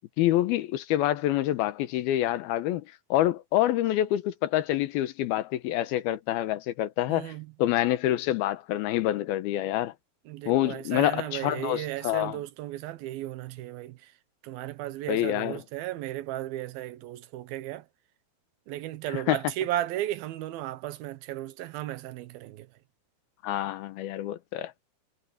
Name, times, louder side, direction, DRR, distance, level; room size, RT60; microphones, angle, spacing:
voice 1, 0.2-2.8 3.1-7.3 7.6-9.9 10.5-12.4 15.1-15.6 19.1-19.4 23.4-24.7, left 14 dB, 90° left, 2.9 m, -27 dB
voice 2, 7.1-7.5 10.3-14.1 14.4-17.9 18.7-22.7, right 14 dB, 80° right, 2.8 m, -35 dB
omnidirectional pair, 4.3 m